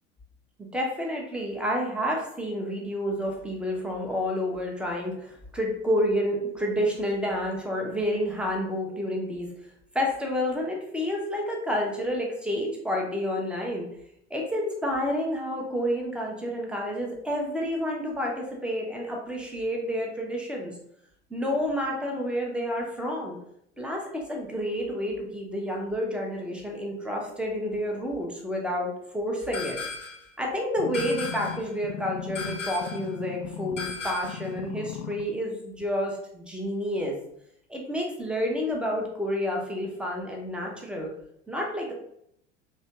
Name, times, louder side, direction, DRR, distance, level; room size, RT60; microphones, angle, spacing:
voice 1, 0.7-9.5 9.9-13.9 14.3-20.7 21.3-23.4 23.8-29.8 30.4-37.1 37.7-41.1 41.5-41.9, equal, 5° right, -1 dB, 0.8 m, -29 dB
sound 1, 29.5-30.3 30.9-31.7 32.3-33.1 33.8-34.5, left 4 dB, 90° left, 0.7 m, -36 dB
sound 2, 30.8-33.9 34.2-35.2 35.8-35.9, left 8 dB, 45° left, 0.4 m, -37 dB
3.2 x 2.8 x 2.9 m, 0.73 s
figure-of-eight pair, 75°, 36 cm